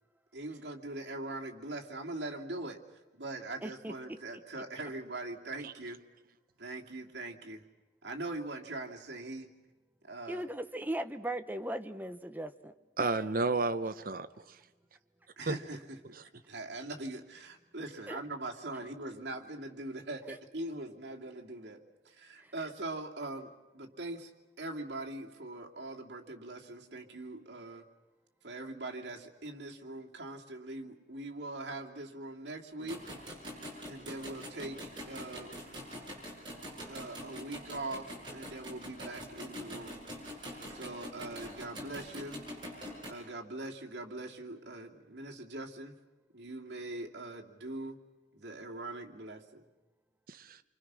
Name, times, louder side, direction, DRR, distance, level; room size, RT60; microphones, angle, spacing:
voice 1, 0.3-2.8 3.1-6.0 6.6-7.6 8.0-9.5 10.0-10.5 15.4-16.0 16.5-21.8 22.0-24.3 24.6-27.8 28.4-33.0 33.8-35.5 36.9-40.0 40.4-42.4 43.1-46.0 46.3-48.0 48.3-49.7, right 2 dB, 70° right, -1 dB, 2.7 m, -42 dB
voice 2, 3.6-4.2 10.3-12.7 18.1-18.2 20.3-20.4 22.4-22.5, right 1 dB, 10° right, 8 dB, 1.0 m, -38 dB
voice 3, 13.0-14.6 15.5-15.6 50.3-50.6, right 3 dB, 50° right, 9 dB, 0.9 m, -32 dB
sound 1, 32.8-43.1, equal, 25° right, 6.6 m, -44 dB
28.5 x 25.0 x 6.3 m, 1.1 s
head